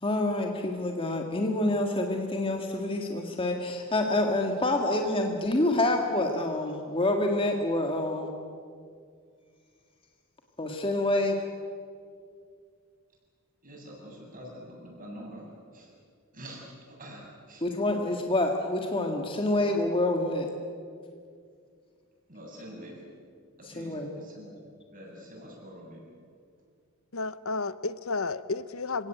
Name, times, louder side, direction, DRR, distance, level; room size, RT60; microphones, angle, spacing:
voice 1, 0.0-8.3 10.6-11.4 17.6-20.5 23.6-24.1, left 1 dB, 25° left, 2 dB, 1.8 m, -27 dB
voice 2, 13.6-15.9 16.3-17.6 22.3-23.0 23.6-24.5 24.9-26.0, equal, 40° right, -1 dB, 7.7 m, -45 dB
voice 3, 27.1-29.1, left 3 dB, 70° left, 15 dB, 0.9 m, -32 dB
28.0 x 17.5 x 9.1 m, 2.2 s
head